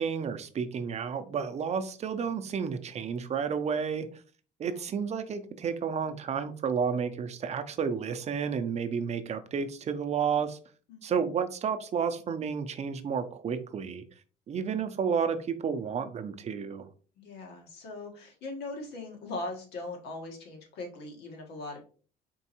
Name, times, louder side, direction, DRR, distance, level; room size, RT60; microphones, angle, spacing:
voice 1, 0.0-4.1 4.6-10.6 11.0-14.0 14.5-16.9, right 6 dB, 40° right, 9 dB, 0.6 m, -31 dB
voice 2, 4.6-4.9 10.9-11.3 17.2-21.8, left 2 dB, 85° left, 2 dB, 1.4 m, -40 dB
4.5 x 3.1 x 2.9 m, 0.39 s
cardioid pair, 110°, 17 cm